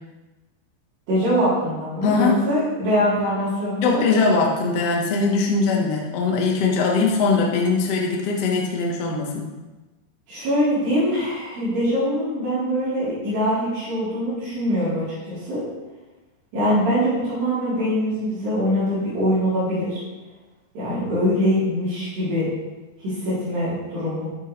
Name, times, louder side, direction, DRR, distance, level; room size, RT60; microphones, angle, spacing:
voice 1, 1.1-4.0 10.3-15.6 16.5-20.0 20.7-22.5 23.0-24.3, equal, 70° right, -14 dB, 5.9 m, -23 dB
voice 2, 2.0-2.5 3.8-9.5, left 4 dB, 55° left, -1 dB, 1.9 m, -21 dB
13.0 x 8.2 x 3.4 m, 1.2 s
omnidirectional pair, 4.8 m